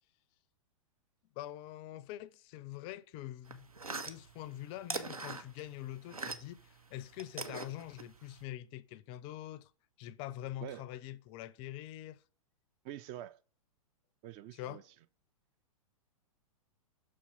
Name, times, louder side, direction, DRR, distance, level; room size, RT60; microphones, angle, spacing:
voice 1, 1.4-3.7 4.0-9.7 10.0-12.2 14.5-14.8, left 14 dB, 30° left, 0.4 m, -45 dB
sound 1, 3.4-6.7 6.9-8.4, right 3 dB, 85° right, 0.9 m, -42 dB
voice 2, 12.8-13.4 14.2-14.8, right 12 dB, 30° right, 0.4 m, -45 dB
6.3 x 4.2 x 5.7 m
figure-of-eight pair, 105°, 18 cm